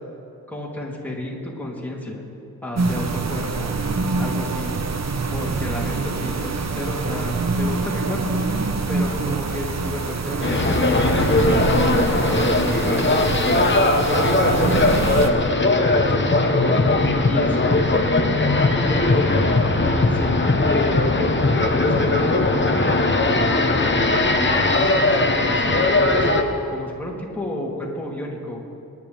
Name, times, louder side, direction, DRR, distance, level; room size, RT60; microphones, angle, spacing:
voice 1, 0.5-2.2 2.6-3.7 4.2-4.7 5.3-8.4 8.9-16.9 17.2-19.2 19.8-22.7 23.2-26.3 26.7-28.6, left 1 dB, 5° left, -5 dB, 3.3 m, -31 dB
sound 1, 2.7-15.3, right 4 dB, 45° right, 0.9 m, -25 dB
sound 2, 10.4-26.4, left 2 dB, 30° left, 1.1 m, -19 dB
25.0 x 11.0 x 3.5 m, 2.6 s
wide cardioid pair, 85°, 37 cm